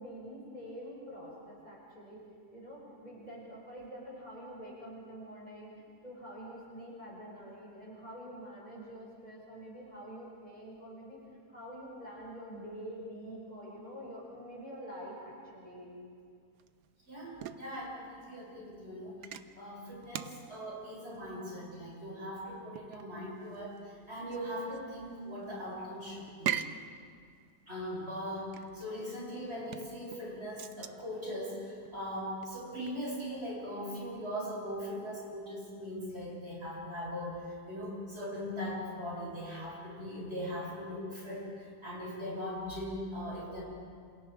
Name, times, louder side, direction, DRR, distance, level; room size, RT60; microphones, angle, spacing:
voice 1, 0.0-2.2 2.5-11.2 11.5-16.0, equal, 25° left, -5 dB, 6.8 m, -46 dB
sound 1, 16.6-33.1, right 9 dB, 90° right, 1.4 m, -43 dB
voice 2, 17.1-26.5 27.7-43.6, equal, 40° right, -5 dB, 7.7 m, -40 dB
28.5 x 27.5 x 4.9 m, 2.2 s
omnidirectional pair, 1.7 m